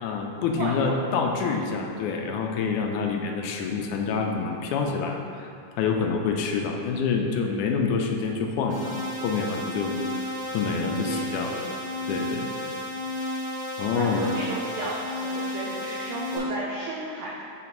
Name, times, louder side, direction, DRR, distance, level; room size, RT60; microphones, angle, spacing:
voice 1, 0.0-5.2 5.8-9.0 9.2-10.2 10.5-11.5 12.1-12.7 13.8-14.3, left 5 dB, 85° left, 2 dB, 2.1 m, -27 dB
voice 2, 0.6-0.9 11.0-11.6 13.9-17.4, right 2 dB, 85° right, -5 dB, 1.2 m, -34 dB
sound 1, 8.7-16.4, left 1 dB, 40° right, 1.8 m, -32 dB
6.0 x 3.9 x 5.9 m, 2.3 s
omnidirectional pair, 3.5 m